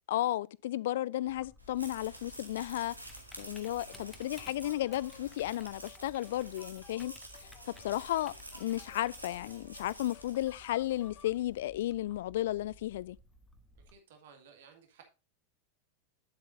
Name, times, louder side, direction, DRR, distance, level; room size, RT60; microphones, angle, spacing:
voice 1, 0.1-2.9 3.4-7.1 7.4-13.2, left 14 dB, 55° left, 0.3 m, -34 dB
Typing, 1.3-13.9, left 1 dB, 5° left, 1.1 m, -57 dB
sound 1, 1.6-11.1, right 1 dB, 85° right, 1.7 m, -50 dB
sound 2, 3.6-11.4, left 8 dB, 30° left, 1.4 m, -59 dB
voice 2, 13.8-15.0, right 6 dB, 55° right, 2.0 m, -57 dB
9.6 x 7.8 x 2.6 m
figure-of-eight pair, 90°, 0 cm